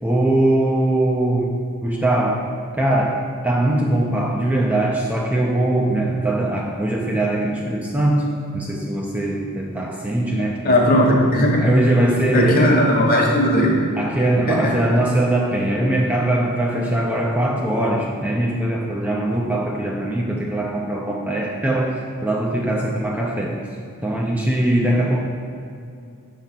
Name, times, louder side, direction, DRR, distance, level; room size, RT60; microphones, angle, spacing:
voice 1, 0.0-2.5 2.8-10.8 11.6-12.8 13.9-23.7 24.0-25.2, right 1 dB, 5° right, -3 dB, 0.4 m, -21 dB
voice 2, 10.6-11.6 12.3-13.8 14.5-14.6, left 1 dB, 40° left, -1 dB, 1.1 m, -17 dB
7.1 x 3.9 x 5.7 m, 2.4 s
head